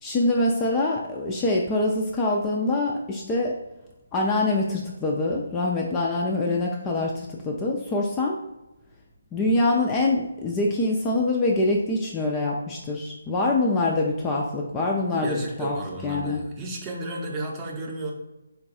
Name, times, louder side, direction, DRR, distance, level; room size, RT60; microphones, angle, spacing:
voice 1, 0.0-3.5 4.1-8.4 9.3-15.8 16.0-16.4, left 2 dB, 15° left, -1 dB, 0.4 m, -24 dB
voice 2, 15.1-18.1, right 2 dB, 15° right, -1 dB, 0.7 m, -33 dB
3.9 x 2.2 x 4.1 m, 0.96 s
figure-of-eight pair, 145°, 0 cm